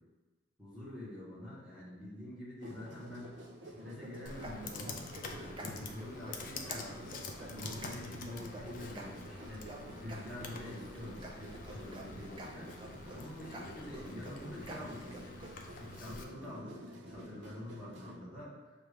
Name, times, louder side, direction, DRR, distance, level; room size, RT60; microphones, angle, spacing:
voice 1, 0.6-3.3 3.6-5.0 5.3-7.1 7.4-9.7 10.0-12.8 13.1-15.2 15.8-16.8 17.1-18.5, left 1 dB, 5° right, -9 dB, 1.4 m, -46 dB
sound 1, 2.6-18.2, equal, 70° right, 0.6 m, -50 dB
sound 2, 4.0-15.5, right 2 dB, 25° right, 0.5 m, -49 dB
Computer keyboard, 4.3-16.2, left 3 dB, 45° left, 0.4 m, -47 dB
5.8 x 2.5 x 3.3 m, 1.2 s
head